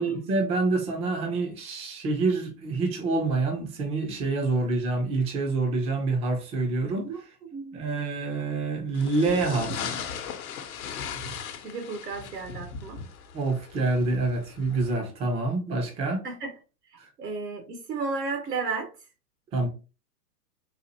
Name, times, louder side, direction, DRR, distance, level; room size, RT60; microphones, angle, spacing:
voice 1, 0.0-7.1 7.7-10.0 13.3-16.2 19.5-19.7, right 3 dB, 15° right, 0.4 m, -27 dB
voice 2, 7.5-7.8 11.6-13.0 16.2-16.5 17.2-18.9, right 4 dB, 85° right, 1.2 m, -33 dB
sound 1, 8.9-14.9, left 6 dB, 60° left, 0.8 m, -38 dB
4.0 x 2.5 x 2.7 m
hypercardioid pair, 115°, 47 cm